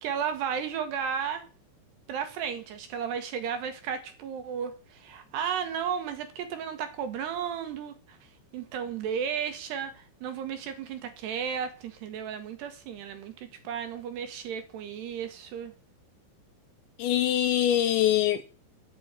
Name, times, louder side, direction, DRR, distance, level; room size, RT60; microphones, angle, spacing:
voice 1, 0.0-1.4 2.1-8.2 8.5-15.7, right 7 dB, 70° right, 2.9 m, -34 dB
voice 2, 17.0-18.4, left 12 dB, 80° left, 2.7 m, -23 dB
11.0 x 7.0 x 8.7 m
omnidirectional pair, 5.8 m